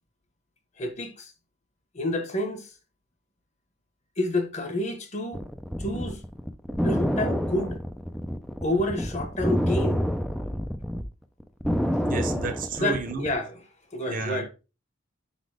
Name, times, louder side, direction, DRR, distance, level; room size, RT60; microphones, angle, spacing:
voice 1, 0.8-1.3 1.9-2.7 4.2-5.4 5.8-6.2 6.8-7.8 8.6-10.0 12.8-13.6 13.9-14.5, left 1 dB, 35° left, 1.5 m, -29 dB
sound 1, 5.3-11.0 11.4-13.3, equal, ahead, 0.5 m, -27 dB
voice 2, 12.0-13.2 14.1-14.4, right 4 dB, 40° right, 0.8 m, -31 dB
5.7 x 4.1 x 5.0 m
head